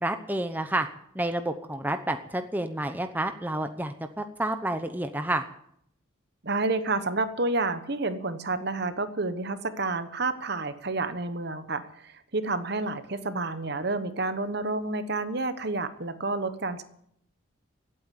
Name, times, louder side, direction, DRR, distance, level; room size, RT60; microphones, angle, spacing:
voice 1, 0.0-0.9 1.1-5.4, right 1 dB, 10° right, 7 dB, 0.8 m, -29 dB
voice 2, 6.4-16.8, right 3 dB, 50° right, 11 dB, 1.2 m, -29 dB
16.5 x 8.8 x 9.6 m, 0.72 s
head